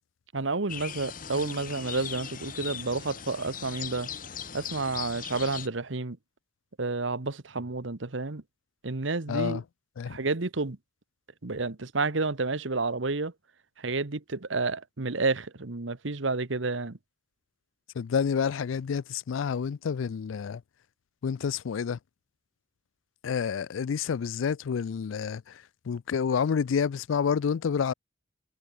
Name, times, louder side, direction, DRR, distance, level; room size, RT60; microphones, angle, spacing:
voice 1, 0.3-4.1 4.5-6.2 6.8-8.4 8.8-9.6 10.1-10.8 11.4-13.3 13.8-17.0, right 3 dB, 75° right, 1.2 m, -30 dB
sound 1, 0.7-5.7, left 8 dB, 45° left, 1.6 m, -39 dB
voice 2, 9.3-9.6 10.0-10.2 18.0-20.6 21.2-22.0 23.2-25.4 25.9-27.9, left 6 dB, 85° left, 0.4 m, -28 dB
head